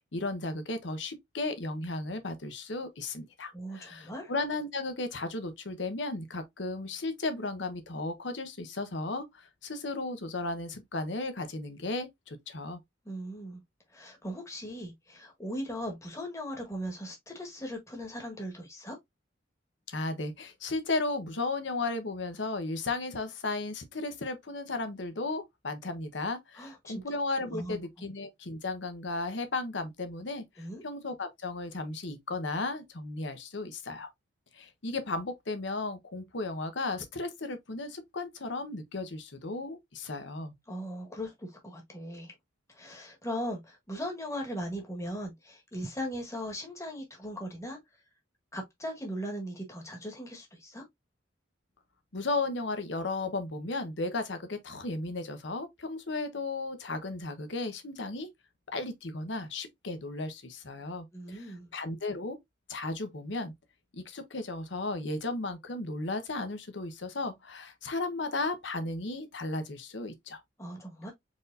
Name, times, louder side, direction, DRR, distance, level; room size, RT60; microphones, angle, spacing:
voice 1, 0.1-12.8 19.9-34.1 34.5-40.5 52.1-58.3 58.7-62.4 62.7-63.5 63.9-70.4, left 2 dB, 70° left, 1.0 m, -35 dB
voice 2, 3.5-4.3 13.0-13.6 13.9-19.0 26.6-27.0 27.4-28.1 30.6-30.8 40.7-42.3 42.7-47.8 48.5-50.8 61.1-61.7 70.6-71.1, equal, 15° left, 1.4 m, -39 dB
4.7 x 4.1 x 2.6 m
head